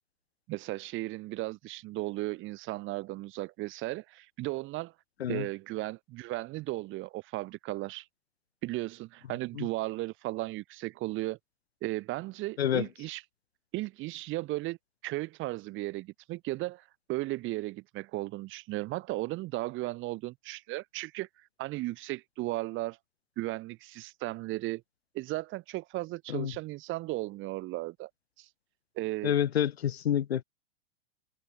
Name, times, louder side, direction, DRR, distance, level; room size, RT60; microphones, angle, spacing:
voice 1, 0.5-4.9 5.3-8.1 8.6-11.4 11.8-13.2 13.7-14.8 15.0-21.3 21.6-23.0 23.4-24.8 25.1-28.1 28.4-28.5 29.0-29.3, right 19 dB, 40° right, 7.1 m, -35 dB
voice 2, 12.6-12.9 26.3-26.5 29.2-30.4, left 10 dB, 75° left, 2.8 m, -28 dB
hypercardioid pair, 110°, 31 cm